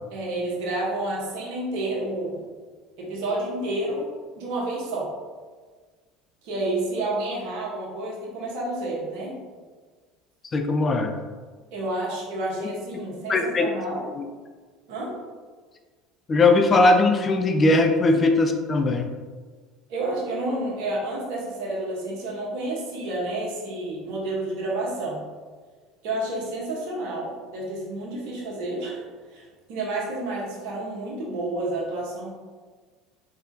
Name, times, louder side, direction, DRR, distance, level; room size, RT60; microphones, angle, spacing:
voice 1, 0.1-2.4 3.0-4.0 4.4-5.1 6.4-9.3 11.7-14.1 14.9-15.1 18.1-18.2 19.9-25.2 26.0-29.0 29.3-29.4 29.7-32.3, right 2 dB, 65° right, -4 dB, 1.0 m, -30 dB
voice 2, 10.5-11.1 12.6-12.7 13.3-13.7 14.1-14.2 16.3-19.1, left 2 dB, 30° left, 5 dB, 0.4 m, -19 dB
3.7 x 3.5 x 2.7 m, 1.5 s
hypercardioid pair, 70°, 0 cm